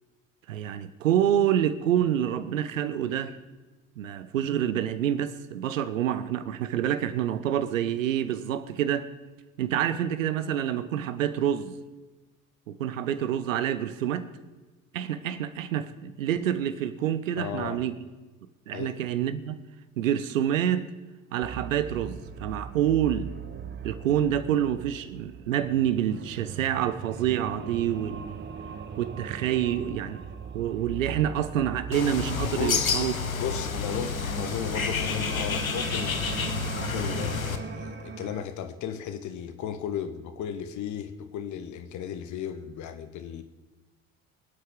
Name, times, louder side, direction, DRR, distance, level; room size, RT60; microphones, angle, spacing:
voice 1, 0.5-3.3 4.0-9.1 9.6-11.8 12.7-14.3 14.9-17.9 18.7-19.5 20.0-20.9 21.3-23.3 23.8-28.4 29.0-30.3 30.5-33.1, right 10 dB, 75° right, 0.8 m, -27 dB
voice 2, 17.4-17.8 18.7-19.0 32.5-33.1 33.4-36.1 36.7-43.4, left 8 dB, 45° left, 1.3 m, -35 dB
sound 1, 21.4-38.4, right 6 dB, 25° right, 0.9 m, -39 dB
Bird, 31.9-37.6, left 6 dB, 85° left, 0.8 m, -29 dB
25.0 x 8.3 x 3.7 m
figure-of-eight pair, 60°, 40 cm